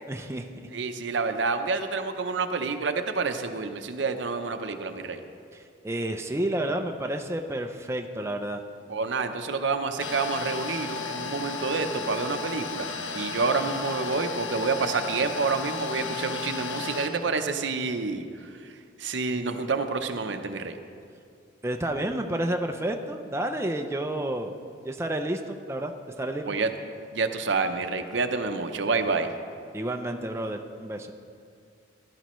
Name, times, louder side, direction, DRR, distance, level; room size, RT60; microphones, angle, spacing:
voice 1, 0.1-0.7 5.5-8.6 21.6-24.5 24.8-26.6 29.7-31.1, right 1 dB, 15° right, 4 dB, 0.4 m, -30 dB
voice 2, 0.7-5.2 8.9-12.9 13.1-20.8 26.5-26.7 27.1-29.3, right 4 dB, 75° right, 7 dB, 0.7 m, -28 dB
sound 1, 10.0-17.1, left 5 dB, 90° left, 0.9 m, -34 dB
15.5 x 11.5 x 3.1 m, 2.3 s
head